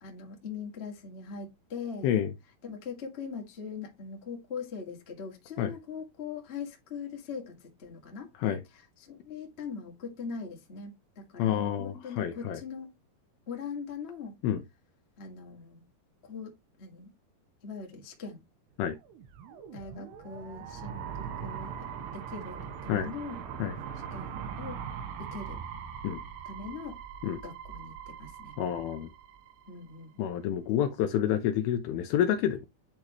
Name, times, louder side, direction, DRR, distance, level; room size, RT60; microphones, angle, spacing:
voice 1, 0.0-2.1 2.6-8.3 8.7-12.9 13.5-14.4 15.2-15.8 16.2-16.5 16.8-17.1 17.6-18.4 19.7-23.4 24.1-24.8 25.2-25.6 26.4-27.0 27.4-28.5 29.7-30.2, left 5 dB, 55° left, 0.6 m, -41 dB
voice 2, 11.4-12.6 14.4-14.6 18.8-19.0 22.9-23.1 23.6-23.7 26.0-26.2 27.2-27.4 28.6-29.1 30.2-32.7, left 10 dB, 80° left, 2.3 m, -28 dB
sound 1, 19.0-30.0, right 7 dB, 80° right, 2.8 m, -41 dB
10.5 x 3.7 x 3.0 m
omnidirectional pair, 5.0 m